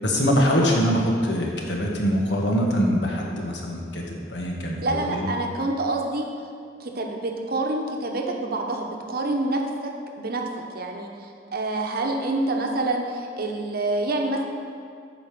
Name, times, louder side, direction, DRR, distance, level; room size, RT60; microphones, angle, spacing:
voice 1, 0.0-5.3, equal, 70° left, -1 dB, 1.5 m, -23 dB
voice 2, 4.8-6.3 6.8-10.5 10.7-14.4, right 2 dB, 60° right, 2 dB, 1.0 m, -27 dB
8.4 x 5.3 x 6.8 m, 2.4 s
head